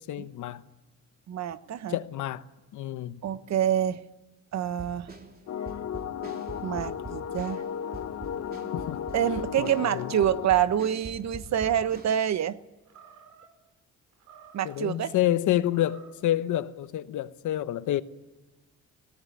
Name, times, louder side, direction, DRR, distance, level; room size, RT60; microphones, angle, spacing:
voice 1, 0.1-0.6 1.9-2.4 2.7-3.2 8.7-9.0 9.6-10.1 14.6-18.0, left 13 dB, 80° left, 1.0 m, -28 dB
voice 2, 1.3-2.0 3.2-4.0 4.5-5.1 6.6-7.6 9.1-12.6 14.5-15.1, right 10 dB, 60° right, 1.0 m, -27 dB
sound 1, 4.7-12.2, right 1 dB, 30° right, 3.5 m, -43 dB
sound 2, 5.5-10.5, left 8 dB, 55° left, 1.0 m, -35 dB
Animal, 11.5-12.2 12.9-13.5 14.1-14.9 15.6-16.3, right 6 dB, 80° right, 4.5 m, -54 dB
20.5 x 17.5 x 9.4 m
cardioid pair, 90°, 30 cm